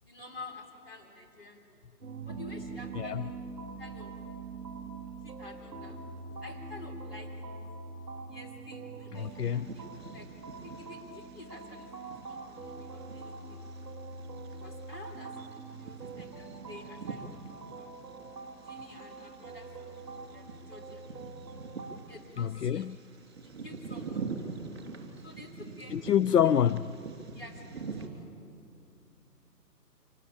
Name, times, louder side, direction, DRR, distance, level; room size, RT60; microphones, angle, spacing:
voice 1, 0.0-1.8 2.3-3.3 3.8-4.1 5.2-6.0 6.4-7.3 8.3-10.3 10.6-13.6 14.5-17.3 17.8-18.0 18.6-20.0 20.3-21.0 22.1-22.9 23.4-24.3 25.2-26.1 26.4-26.5 27.3-28.3, left 2 dB, 35° left, 3.7 m, -50 dB
sound 1, 2.0-22.0, right 3 dB, ahead, 1.5 m, -44 dB
voice 2, 2.9-3.3 9.2-9.8 22.4-23.0 25.9-26.9, left 9 dB, 70° left, 0.6 m, -27 dB
Bird vocalization bird call bird song, 9.2-28.1, right 4 dB, 40° right, 3.4 m, -45 dB
25.5 x 19.0 x 8.7 m
hypercardioid pair, 175°, 49 cm